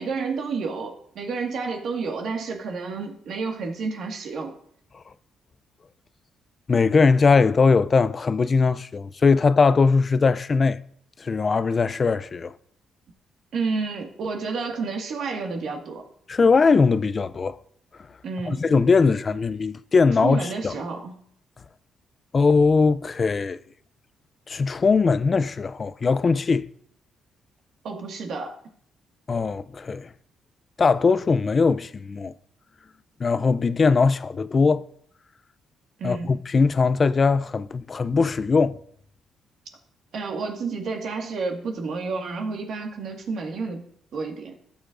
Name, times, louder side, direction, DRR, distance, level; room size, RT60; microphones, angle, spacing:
voice 1, 0.0-4.5 13.5-16.0 18.2-18.6 20.2-21.1 27.8-28.6 36.0-36.3 40.1-43.8 44.1-44.6, right 4 dB, 65° right, 1.8 m, -30 dB
voice 2, 6.7-10.8 11.2-12.5 16.3-17.6 18.5-20.7 22.3-23.6 24.5-26.7 29.3-30.1 30.8-32.3 33.2-34.8 36.0-38.8, left 4 dB, 35° left, 0.4 m, -20 dB
16.5 x 6.9 x 2.6 m
cardioid pair, 90°, 0 cm